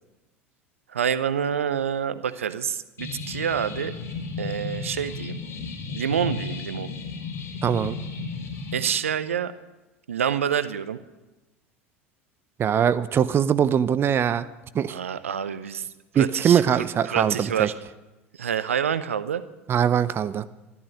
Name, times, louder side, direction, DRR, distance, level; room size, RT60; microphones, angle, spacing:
voice 1, 0.9-3.9 4.4-5.4 5.9-6.9 8.7-9.5 10.1-11.0 14.9-15.9 16.1-16.6 17.1-17.7 18.4-19.4, right 8 dB, 80° right, 13 dB, 0.7 m, -27 dB
sound 1, 3.0-8.8, left 4 dB, 40° left, 3.3 m, -34 dB
voice 2, 7.6-8.0 12.6-14.5 14.7-15.0 16.1-17.7 19.7-20.5, right 8 dB, 30° right, 14 dB, 0.7 m, -22 dB
14.0 x 12.0 x 6.5 m, 1.1 s
figure-of-eight pair, 75°, 7 cm